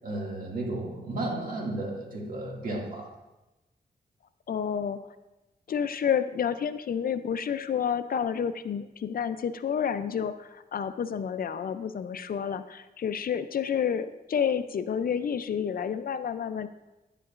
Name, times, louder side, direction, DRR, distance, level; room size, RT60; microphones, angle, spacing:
voice 1, 0.0-3.1, right 2 dB, 55° right, -2 dB, 2.1 m, -33 dB
voice 2, 4.5-5.0 5.7-16.7, left 7 dB, 60° left, 11 dB, 0.4 m, -29 dB
9.9 x 9.8 x 2.4 m, 1.0 s
wide cardioid pair, 95°, 17 cm